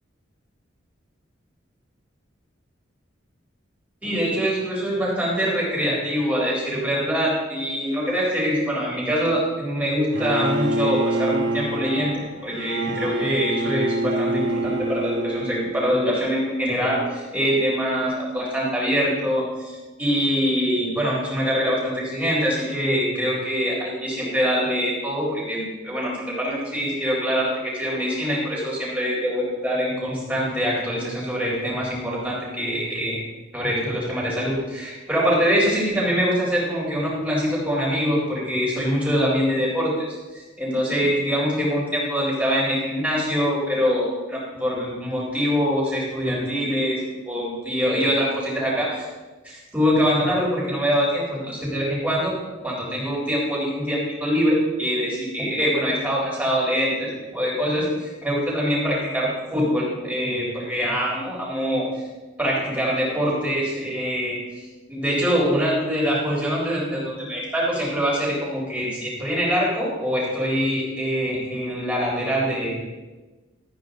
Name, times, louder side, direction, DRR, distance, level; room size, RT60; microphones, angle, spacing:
voice 1, 4.0-33.2 33.5-40.1 40.3-49.1 49.4-52.3 52.6-62.0 62.4-72.9, equal, 10° right, -6 dB, 4.4 m, -24 dB
Bowed string instrument, 10.1-16.3, right 1 dB, 70° right, 1.8 m, -27 dB
14.5 x 9.3 x 4.0 m, 1.2 s
head